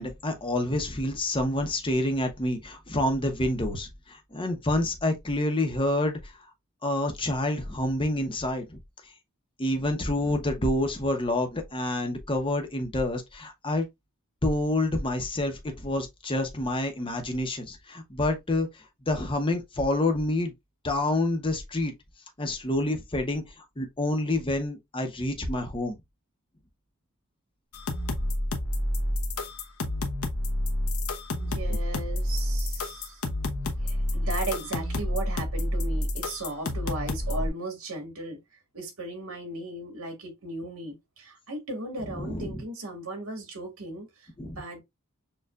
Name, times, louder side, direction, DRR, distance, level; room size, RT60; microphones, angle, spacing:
voice 1, 0.0-6.2 6.8-8.8 9.6-13.9 14.4-18.7 19.1-20.5 20.8-21.9 22.4-23.4 23.8-26.0 42.2-42.6 44.4-44.6, left 1 dB, 25° left, 0.9 m, -28 dB
sound 1, 27.7-37.5, left 1 dB, 85° left, 0.9 m, -29 dB
voice 2, 31.3-33.2 33.8-38.4 38.7-44.1 44.4-44.8, right 2 dB, 80° right, 2.2 m, -36 dB
6.5 x 2.4 x 2.3 m
head